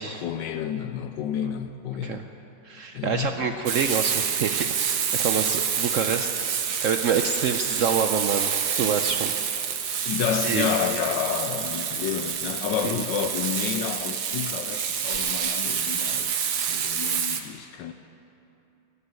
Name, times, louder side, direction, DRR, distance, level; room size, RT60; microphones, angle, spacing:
voice 1, 0.1-2.3 2.9-3.6 10.0-17.9, left 8 dB, 80° left, 8 dB, 1.2 m, -30 dB
voice 2, 2.6-4.8 5.1-6.3 6.8-8.5 8.8-9.3 10.4-10.7 12.8-12.9, right 6 dB, 75° right, 6 dB, 0.7 m, -26 dB
Frying (food), 3.7-17.4, right 7 dB, 60° right, 1.4 m, -27 dB
20.0 x 6.9 x 8.9 m, 2.9 s
omnidirectional pair, 2.0 m